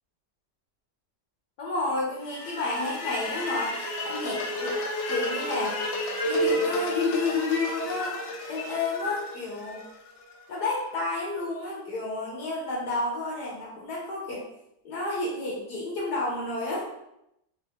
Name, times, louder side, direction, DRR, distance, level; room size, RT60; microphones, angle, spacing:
voice 1, 1.6-4.8 5.1-5.8 6.2-8.2 8.5-9.8 10.5-14.4 14.8-16.9, left 3 dB, 70° left, -3 dB, 1.2 m, -30 dB
sound 1, 2.2-10.3, equal, 90° left, 1.3 m, -31 dB
3.5 x 2.0 x 3.4 m, 0.82 s
omnidirectional pair, 1.9 m